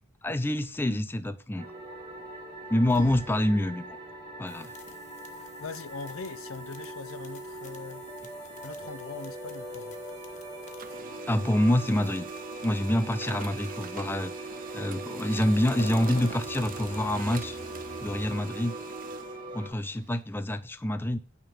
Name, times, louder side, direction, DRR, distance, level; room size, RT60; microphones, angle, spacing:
voice 1, 0.2-1.7 2.7-3.8 4.4-4.7 11.3-12.3 12.6-14.3 14.7-17.6 18.0-18.8 19.5-21.2, left 1 dB, 10° left, 0.4 m, -26 dB
sound 1, 1.6-19.7, right 2 dB, 20° right, 1.7 m, -41 dB
sound 2, 2.9-3.5 4.5-11.1 11.4-14.5 15.1-18.3, left 2 dB, 35° left, 1.2 m, -47 dB
voice 2, 5.4-8.0 8.6-10.0, left 4 dB, 75° left, 0.6 m, -41 dB
Printer, 9.1-10.4 10.7-20.2, right 6 dB, 40° right, 0.5 m, -44 dB
8.9 x 3.7 x 6.9 m
head